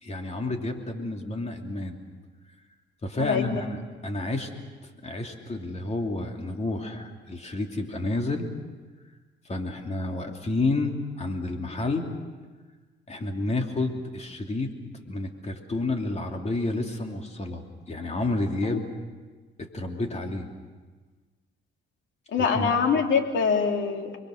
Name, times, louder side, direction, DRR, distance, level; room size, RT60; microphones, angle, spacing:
voice 1, 0.0-2.0 3.0-4.5 5.0-8.5 9.5-12.1 13.1-14.7 15.1-18.9 19.6-20.5 22.4-22.7, left 2 dB, 35° left, 3 dB, 3.0 m, -30 dB
voice 2, 3.2-3.6 22.3-24.2, left 6 dB, 70° left, 3 dB, 3.0 m, -24 dB
30.0 x 22.0 x 6.5 m, 1.3 s
cardioid pair, 90°, 20 cm